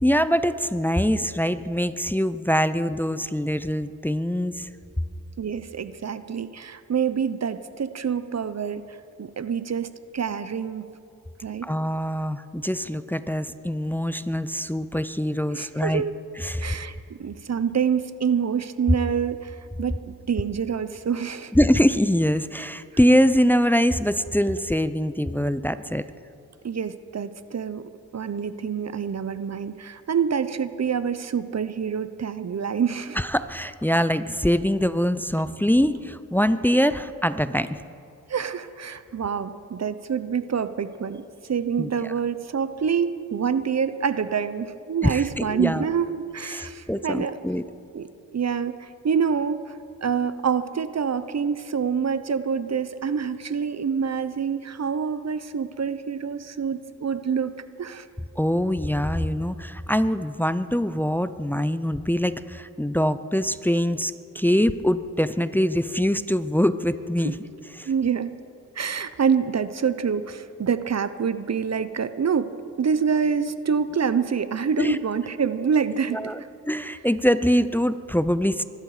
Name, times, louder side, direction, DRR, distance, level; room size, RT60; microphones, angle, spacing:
voice 1, 0.0-4.7 11.6-16.0 16.4-16.8 21.5-26.0 33.2-37.8 41.8-42.1 45.0-45.8 46.5-47.6 58.4-67.3 67.8-67.9 74.8-75.0 76.1-78.6, equal, 5° left, 13 dB, 0.6 m, -23 dB
voice 2, 5.4-10.9 11.4-11.7 15.5-16.1 16.6-21.5 26.6-33.2 38.3-47.4 47.9-48.1 48.3-49.8 50.0-58.1 67.9-68.3 68.8-72.5 72.8-76.2, right 6 dB, 50° right, 13 dB, 0.8 m, -26 dB
24.0 x 12.0 x 5.0 m, 2.4 s
cardioid pair, 50°, 34 cm